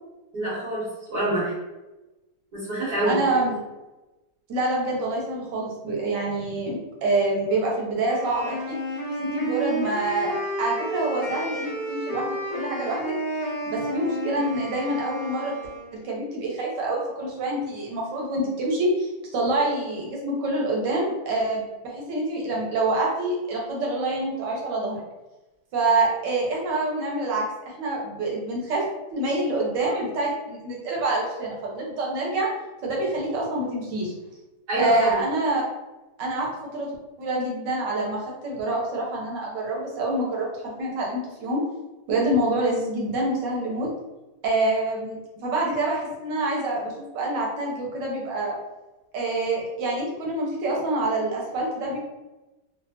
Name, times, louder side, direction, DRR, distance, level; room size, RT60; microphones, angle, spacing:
voice 1, 0.3-1.5 2.5-3.2 34.7-35.2, right 1 dB, 70° right, -10 dB, 1.7 m, -26 dB
voice 2, 3.0-3.6 4.5-8.8 9.2-13.1 13.7-15.5 15.9-25.0 25.7-32.5 32.8-34.1 34.8-35.6 36.2-40.5 40.8-41.6 42.1-43.9 44.4-48.6 49.1-52.0, right 2 dB, 85° right, -2 dB, 1.5 m, -26 dB
Wind instrument woodwind instrument, 8.1-16.0, right 1 dB, 65° left, 0.3 m, -31 dB
3.3 x 2.4 x 2.7 m, 1.1 s
omnidirectional pair, 1.8 m